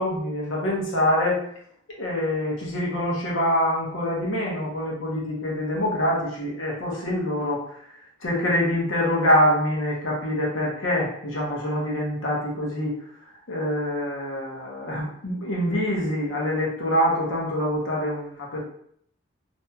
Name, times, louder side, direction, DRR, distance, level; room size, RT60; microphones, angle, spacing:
voice 1, 0.0-1.4 2.0-7.6 8.2-12.9 13.5-18.6, left 1 dB, 90° left, -3 dB, 0.9 m, -25 dB
2.8 x 2.7 x 2.3 m, 0.67 s
head